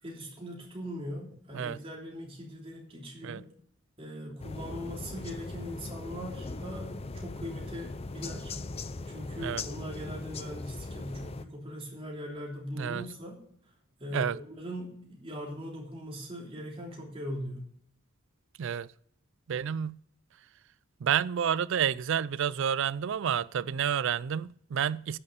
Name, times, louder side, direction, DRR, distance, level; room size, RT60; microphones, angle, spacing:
voice 1, 0.0-3.4 4.0-8.5 9.1-13.4 14.0-17.7, equal, 25° right, 3.2 m, -40 dB
sound 1, 4.4-11.4, left 3 dB, 30° left, 0.5 m, -39 dB
voice 2, 19.5-20.0 21.0-25.2, right 8 dB, 60° right, 0.4 m, -29 dB
11.0 x 6.7 x 6.7 m
head